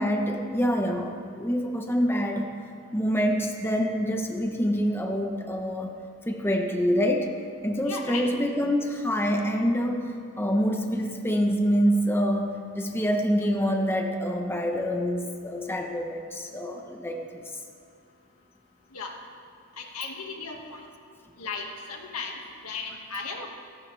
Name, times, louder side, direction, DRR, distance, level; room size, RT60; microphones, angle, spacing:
voice 1, 0.0-2.5 2.9-6.0 6.3-7.3 7.6-10.0 10.4-17.4, equal, 10° left, 2 dB, 1.1 m, -26 dB
voice 2, 7.8-8.3 18.9-19.1 19.8-20.8 21.4-23.5, left 4 dB, 90° left, 1 dB, 2.0 m, -36 dB
29.0 x 11.5 x 3.5 m, 2.3 s
head